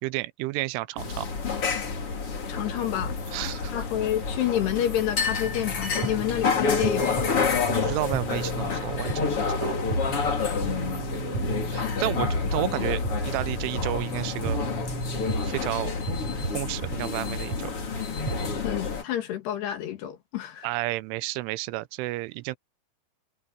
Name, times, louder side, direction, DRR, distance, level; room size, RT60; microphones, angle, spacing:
voice 1, 0.0-1.3 3.3-3.7 7.7-9.7 10.6-14.6 15.4-15.9 16.5-17.7 20.6-22.6, right 19 dB, 85° right, 3.1 m, -32 dB
sound 1, 1.0-19.0, left 5 dB, 35° left, 3.0 m, -29 dB
voice 2, 2.5-3.2 3.7-7.3 18.6-20.7, left 11 dB, 65° left, 3.6 m, -29 dB
sound 2, 5.4-18.6, right 3 dB, 35° right, 8.0 m, -35 dB
omnidirectional pair, 5.5 m